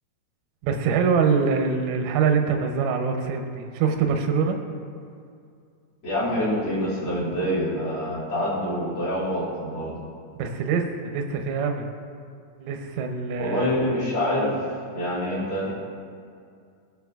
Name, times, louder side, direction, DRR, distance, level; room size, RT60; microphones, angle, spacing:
voice 1, 0.6-4.6 10.4-11.9 12.6-13.7, right 5 dB, 90° right, 4 dB, 3.3 m, -24 dB
voice 2, 6.0-10.0 13.4-15.7, equal, 75° left, -10 dB, 1.1 m, -26 dB
19.5 x 6.8 x 2.4 m, 2.3 s
omnidirectional pair, 5.6 m